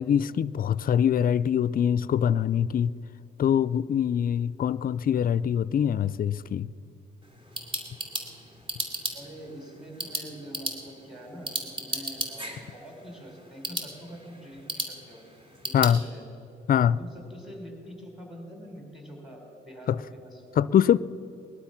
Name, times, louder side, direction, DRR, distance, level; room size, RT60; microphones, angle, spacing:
voice 1, 0.0-2.9 3.4-6.7 15.7-16.0 16.7-17.0 19.9-20.0 20.6-21.0, left 9 dB, 45° left, 18 dB, 0.5 m, -23 dB
sound 1, 7.2-16.0, right 1 dB, 25° right, 2.6 m, -36 dB
voice 2, 9.1-15.2 15.6-16.3 17.0-20.7, equal, ahead, 2 dB, 4.1 m, -45 dB
20.0 x 12.0 x 5.8 m, 2.8 s
cardioid pair, 90°, 20 cm